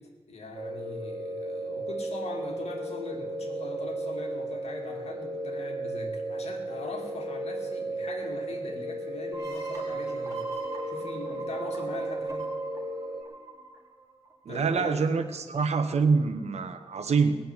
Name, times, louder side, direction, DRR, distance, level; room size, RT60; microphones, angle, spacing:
voice 1, 0.3-10.5 10.9-12.5 14.5-15.1, left 3 dB, 75° left, 1 dB, 2.4 m, -41 dB
sound 1, 0.5-13.2, right 2 dB, 55° right, 2.7 m, -34 dB
sound 2, 9.3-14.8, right 3 dB, 25° right, 4.7 m, -43 dB
voice 2, 14.4-17.3, right 5 dB, 80° right, 8 dB, 1.2 m, -25 dB
19.0 x 6.9 x 9.7 m, 1.4 s
wide cardioid pair, 120°, 11 cm